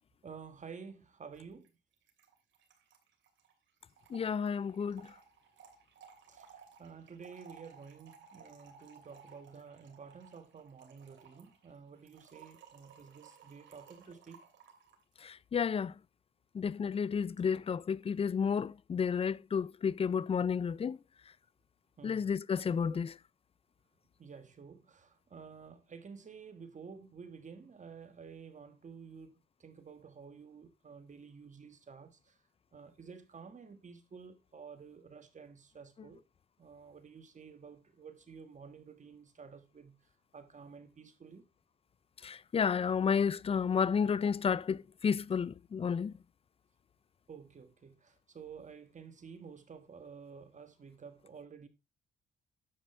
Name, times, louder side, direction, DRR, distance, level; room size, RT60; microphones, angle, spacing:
voice 1, 0.2-1.7 6.3-14.5 22.0-22.3 22.9-23.1 24.2-32.4 32.7-36.2 36.6-40.0 40.3-41.5 47.3-51.7, right 6 dB, 40° right, 1.5 m, -51 dB
Trickle dribble / Fill (with liquid), 1.3-1.4 1.6-1.7 1.9-15.0, right 6 dB, 65° right, 2.8 m, -59 dB
voice 2, 4.1-5.1 15.2-15.9 16.5-21.0 22.0-23.1 42.2-46.2, left 6 dB, 30° left, 0.4 m, -31 dB
10.5 x 7.6 x 3.2 m
cardioid pair, 90°, 20 cm